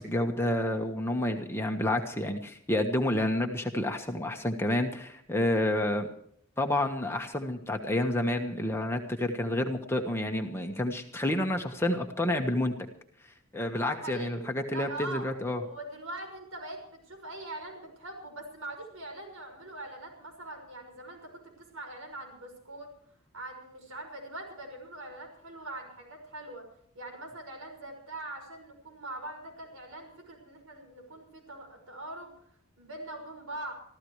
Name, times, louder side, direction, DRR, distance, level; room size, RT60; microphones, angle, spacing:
voice 1, 0.0-6.1 6.6-12.7 13.5-15.6, left 1 dB, 10° left, 3 dB, 1.3 m, -29 dB
voice 2, 13.8-15.3 15.6-22.9 23.3-26.7 26.9-32.3 32.8-33.7, right 2 dB, 75° right, 4 dB, 6.0 m, -42 dB
25.5 x 15.0 x 3.2 m, 0.65 s
head